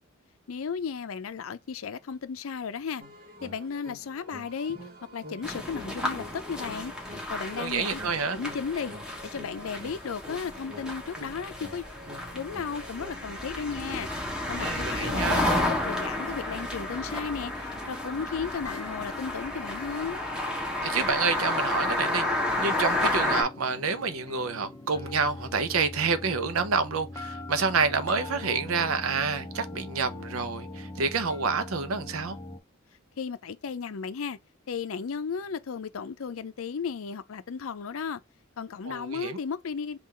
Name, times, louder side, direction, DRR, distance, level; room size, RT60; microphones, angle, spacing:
voice 1, 0.5-3.0 3.4-4.8 5.1-8.0 8.3-8.9 9.2-11.8 12.3-14.1 14.5-20.2 33.2-34.4 34.7-38.2 38.6-40.0, left 6 dB, 70° left, 0.5 m, -34 dB
sound 1, 3.0-13.4, left 1 dB, 50° right, 1.0 m, -47 dB
sound 2, 5.4-23.4, left 1 dB, 5° right, 1.0 m, -31 dB
voice 2, 7.6-8.4 14.6-15.4 20.8-32.4 38.8-39.4, right 5 dB, 80° right, 0.6 m, -28 dB
sound 3, 16.9-32.6, left 2 dB, 15° left, 0.5 m, -42 dB
3.8 x 2.5 x 4.2 m
head